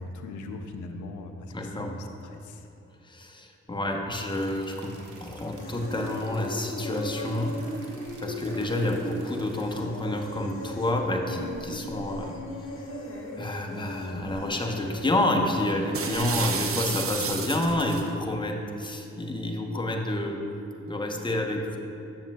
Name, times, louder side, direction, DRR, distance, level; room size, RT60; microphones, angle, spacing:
voice 1, 0.0-2.7, left 2 dB, 80° left, 5 dB, 0.6 m, -40 dB
voice 2, 1.5-1.9 3.0-7.6 8.2-12.4 13.4-20.4 20.9-21.8, left 1 dB, 15° left, 1 dB, 0.9 m, -29 dB
sound 1, 4.3-9.6, right 3 dB, 85° right, 0.8 m, -50 dB
sound 2, 5.6-18.0, equal, 45° left, 1.4 m, -38 dB
sound 3, 15.9-18.1, right 5 dB, 50° right, 0.6 m, -31 dB
7.5 x 7.1 x 2.3 m, 2.8 s
supercardioid pair, 50°, 30 cm